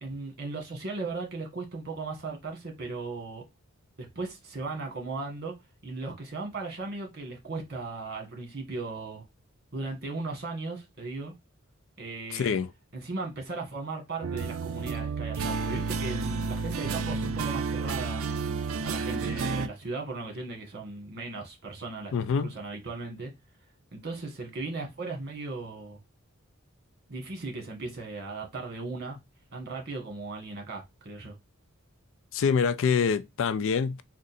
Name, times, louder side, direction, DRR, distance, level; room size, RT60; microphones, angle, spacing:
voice 1, 0.0-3.4 4.0-5.5 5.8-9.2 9.7-11.3 12.0-12.6 12.9-18.2 18.8-22.1 22.4-23.3 23.9-26.0 27.1-29.2 29.5-31.4, right 3 dB, 50° right, 1.4 m, -37 dB
voice 2, 12.3-12.7 22.1-22.5 32.3-34.0, left 6 dB, 65° left, 0.4 m, -25 dB
sound 1, 14.2-19.7, right 4 dB, 75° right, 0.5 m, -31 dB
3.7 x 2.4 x 4.0 m
head